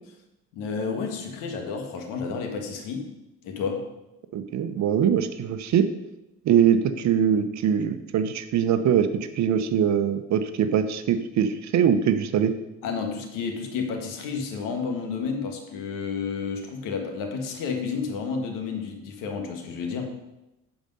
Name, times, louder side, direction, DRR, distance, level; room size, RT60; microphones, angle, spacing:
voice 1, 0.5-3.1 3.4-3.8 12.8-20.1, left 5 dB, 85° left, 4 dB, 1.6 m, -31 dB
voice 2, 4.3-5.9 6.4-12.5, right 8 dB, 60° right, 10 dB, 0.8 m, -22 dB
9.1 x 5.0 x 5.3 m, 0.94 s
supercardioid pair, 85°, 31 cm